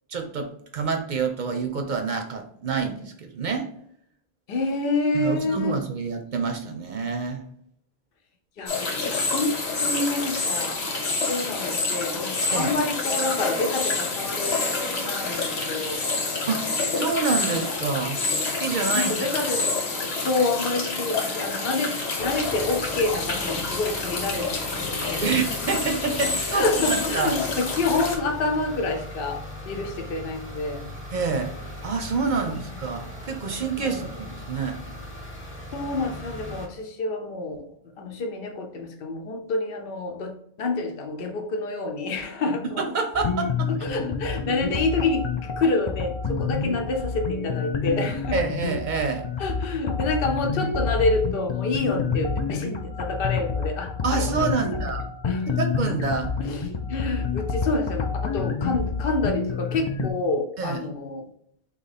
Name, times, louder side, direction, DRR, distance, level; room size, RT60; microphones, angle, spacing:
voice 1, 0.1-3.7 5.1-7.5 12.5-12.7 16.5-19.1 25.2-27.3 31.1-31.5 31.8-34.8 42.8-43.7 48.3-49.3 54.0-55.0 55.5-56.3 60.6-60.8, right 4 dB, 55° right, 5 dB, 0.7 m, -27 dB
voice 2, 4.5-5.7 8.6-10.8 11.3-16.1 18.9-25.2 26.5-29.4 29.7-30.9 32.4-32.6 32.9-33.0 33.8-34.1 35.7-37.7 38.0-42.8 43.8-48.4 49.4-54.6 55.2-55.5 56.4-61.2, left 3 dB, 65° left, 3 dB, 0.9 m, -28 dB
sound 1, 8.7-28.2, left 3 dB, 90° left, 1.3 m, -28 dB
sound 2, 22.2-36.7, left 1 dB, 10° left, 0.9 m, -39 dB
sound 3, 43.1-60.1, left 5 dB, 40° left, 0.4 m, -28 dB
4.0 x 2.9 x 4.0 m, 0.68 s
omnidirectional pair, 1.0 m